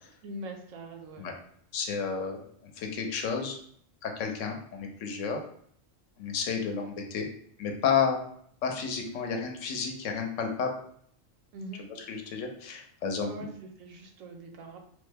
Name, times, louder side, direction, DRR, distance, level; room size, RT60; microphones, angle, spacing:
voice 1, 0.2-1.2 11.5-11.9 13.2-14.8, right 2 dB, 90° right, 2 dB, 1.0 m, -42 dB
voice 2, 1.7-3.6 4.0-5.4 6.2-7.3 7.6-8.2 8.6-10.7 12.1-13.5, left 6 dB, 75° left, 3 dB, 0.9 m, -31 dB
3.2 x 2.1 x 3.3 m, 0.63 s
omnidirectional pair, 1.4 m